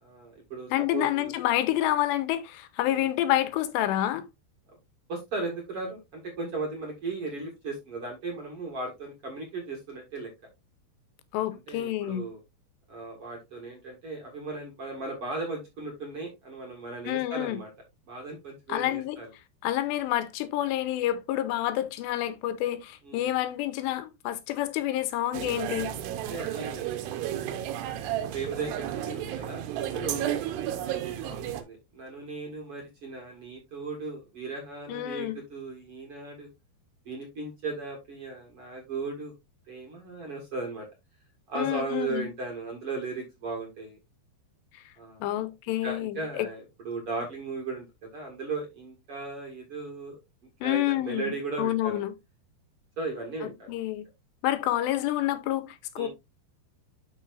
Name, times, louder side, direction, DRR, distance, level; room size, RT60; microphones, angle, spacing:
voice 1, 0.0-1.3 2.9-3.1 5.1-10.3 11.7-12.4 12.9-17.7 18.1-19.3 23.0-23.3 26.3-30.2 30.8-36.5 37.1-39.3 39.7-40.9 41.5-44.0 45.0-45.4 45.8-50.2 50.6-52.0 53.0-53.7 56.0-56.1, right 3 dB, 50° right, 1.9 m, -37 dB
voice 2, 0.7-4.3 11.3-12.3 17.1-17.6 18.7-19.2 19.6-25.9 34.9-35.4 41.6-42.3 45.2-46.5 50.6-52.1 53.7-54.1 54.4-56.1, left 13 dB, 85° left, 3.0 m, -28 dB
sound 1, 25.3-31.6, right 11 dB, 80° right, 3.0 m, -32 dB
11.5 x 4.7 x 2.5 m
omnidirectional pair, 4.9 m